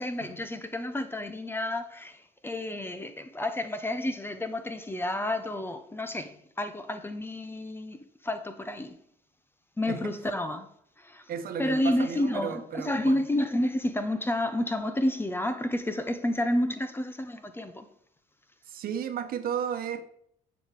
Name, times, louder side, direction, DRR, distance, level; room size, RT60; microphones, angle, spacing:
voice 1, 0.0-8.0 8.2-9.0 9.8-10.7 11.0-11.2 11.6-17.9, left 1 dB, 15° left, 1.0 m, -30 dB
voice 2, 9.9-10.2 11.3-13.2 18.7-20.0, right 8 dB, 60° right, 1.3 m, -34 dB
7.8 x 7.6 x 6.7 m
cardioid pair, 110°, 17 cm